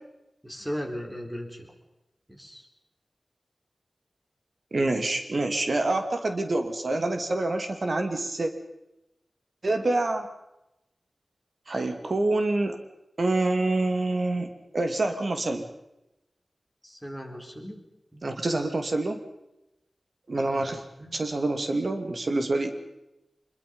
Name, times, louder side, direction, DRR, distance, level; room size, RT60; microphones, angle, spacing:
voice 1, 0.4-1.7 2.3-2.7 16.8-17.8 18.1-18.3 20.5-20.7 21.0-21.1, equal, 10° right, 2 dB, 4.5 m, -37 dB
voice 2, 4.7-8.5 9.6-10.3 11.7-12.8 13.2-15.6 18.2-19.2 20.3-20.8 21.1-22.7, right 2 dB, 60° right, 6 dB, 2.5 m, -26 dB
25.0 x 22.0 x 5.5 m, 0.92 s
wide cardioid pair, 70°, 0 cm